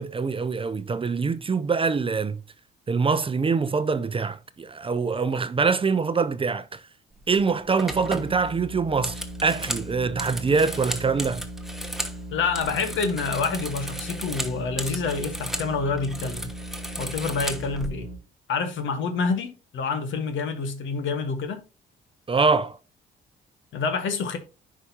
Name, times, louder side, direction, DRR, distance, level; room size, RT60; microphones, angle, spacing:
voice 1, 0.0-2.4 2.9-6.8 7.3-11.4 22.3-22.8, right 4 dB, 25° right, 0.5 m, -24 dB
sound 1, 7.2-7.4 7.8-12.2 12.5-15.7 16.0-17.9, right 1 dB, ahead, 1.1 m, -35 dB
sound 2, 7.9-18.1, right 1 dB, 40° left, 3.7 m, -38 dB
voice 2, 12.3-16.5 17.0-18.1 18.5-21.6 23.7-24.4, left 4 dB, 80° left, 1.4 m, -27 dB
9.8 x 5.0 x 2.8 m
cardioid pair, 90°, 20 cm